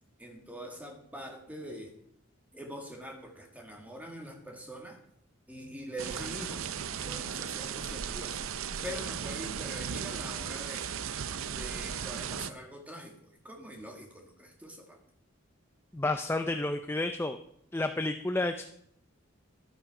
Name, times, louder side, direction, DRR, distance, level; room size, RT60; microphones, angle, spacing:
voice 1, 0.2-1.9 2.5-5.0 5.5-6.7 7.0-8.4 8.8-11.1 11.6-15.0, equal, 5° right, 2 dB, 2.0 m, -44 dB
sound 1, 6.0-12.5, right 7 dB, 80° right, 0.6 m, -36 dB
voice 2, 15.9-17.4 17.7-18.6, left 2 dB, 10° left, 7 dB, 0.5 m, -30 dB
12.5 x 8.8 x 5.9 m, 0.72 s
head